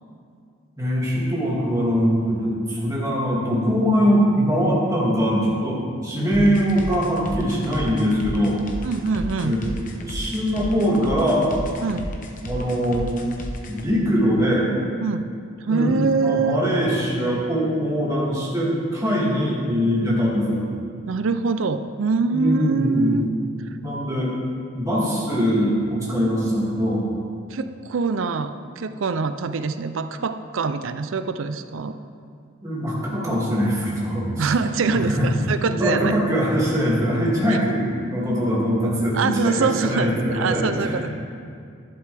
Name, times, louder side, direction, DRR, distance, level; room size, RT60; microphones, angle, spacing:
voice 1, 0.8-8.6 9.4-9.7 10.0-11.5 12.4-13.1 13.7-14.7 15.7-20.7 22.3-23.2 23.7-24.3 24.7-27.0 32.6-34.5 34.8-35.3 35.6-41.1, equal, 15° right, -6 dB, 2.4 m, -22 dB
sound 1, 6.3-13.9, equal, 40° left, 0.9 m, -33 dB
voice 2, 8.8-9.6 11.8-12.1 15.0-15.3 15.6-16.6 21.1-23.3 27.5-32.0 34.4-36.2 37.5-37.6 39.1-41.1, right 4 dB, 70° right, 10 dB, 0.4 m, -24 dB
11.5 x 11.5 x 3.4 m, 2.3 s
head